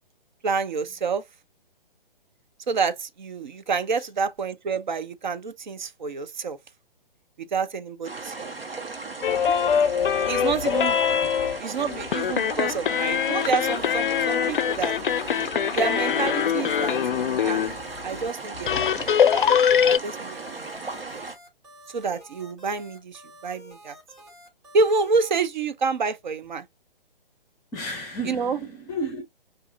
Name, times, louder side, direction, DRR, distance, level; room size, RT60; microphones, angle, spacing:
voice 1, 0.4-1.2 2.7-6.6 7.4-8.5 10.3-11.0 11.6-15.0 15.7-17.0 17.4-17.6 18.0-21.2 21.9-24.0 24.7-26.6 28.3-28.6, right 4 dB, 55° right, 0.6 m, -28 dB
sound 1, 8.0-21.4, right 3 dB, 80° right, 1.1 m, -36 dB
sound 2, 9.2-17.8 18.2-18.3 18.5-20.0, left 8 dB, 60° left, 0.4 m, -23 dB
voice 2, 11.2-11.7 20.8-21.0 27.7-29.2, right 1 dB, 10° left, 0.7 m, -34 dB
sound 3, 13.4-25.4, right 1 dB, 30° right, 2.6 m, -49 dB
4.6 x 2.5 x 2.5 m
figure-of-eight pair, 130°, 29 cm